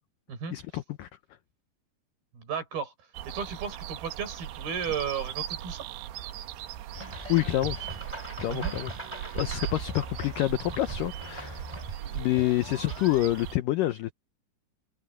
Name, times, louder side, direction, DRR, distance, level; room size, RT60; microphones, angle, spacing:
voice 1, 0.5-1.1 7.3-7.8 8.4-11.7 12.1-14.1, left 15 dB, 90° left, 1.9 m, -28 dB
voice 2, 2.3-2.9 3.3-5.8 8.5-8.7, right 7 dB, 60° right, 5.8 m, -34 dB
sound 1, 3.1-13.6, right 12 dB, 75° right, 3.0 m, -39 dB
sound 2, 6.9-13.3, right 1 dB, 5° right, 3.7 m, -41 dB
omnidirectional pair, 5.0 m